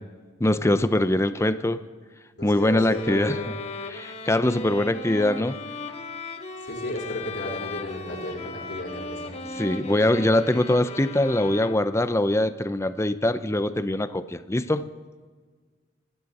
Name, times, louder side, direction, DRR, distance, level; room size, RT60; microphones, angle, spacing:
voice 1, 0.4-1.9 2.4-3.4 3.9-5.6 9.6-14.9, left 1 dB, 15° left, 12 dB, 0.5 m, -23 dB
voice 2, 2.4-3.5 6.6-9.4, left 1 dB, 65° left, -8 dB, 4.6 m, -33 dB
sound 1, 2.9-12.1, left 3 dB, 35° left, 1.1 m, -37 dB
25.5 x 12.5 x 4.2 m, 1.5 s
head